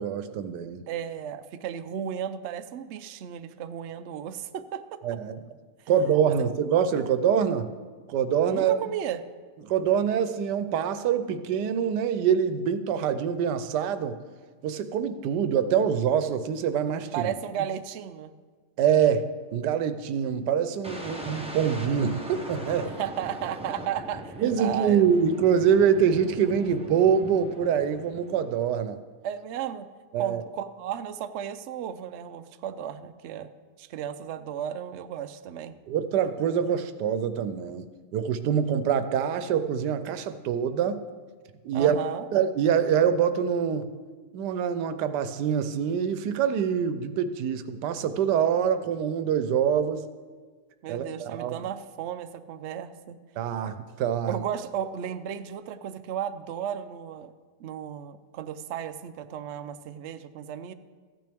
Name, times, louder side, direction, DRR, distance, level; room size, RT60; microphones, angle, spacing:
voice 1, 0.0-0.8 5.0-5.4 5.9-7.7 8.1-8.8 9.6-14.2 14.6-17.3 18.8-22.9 24.4-29.0 30.1-30.4 35.9-41.0 41.6-42.0 42.3-43.9 44.3-50.1 50.9-51.6 53.4-54.4, right 8 dB, 90° right, 11 dB, 1.3 m, -25 dB
voice 2, 0.9-5.0 5.8-5.9 6.3-6.5 8.5-9.2 17.1-18.3 22.8-25.0 29.2-29.9 30.2-33.5 33.8-35.7 41.7-42.3 50.8-53.2 54.3-57.3 57.6-60.7, right 9 dB, 70° right, 10 dB, 0.6 m, -34 dB
sound 1, 20.8-28.7, right 1 dB, 5° right, 0.5 m, -40 dB
14.5 x 9.3 x 3.5 m, 1.5 s
omnidirectional pair, 1.8 m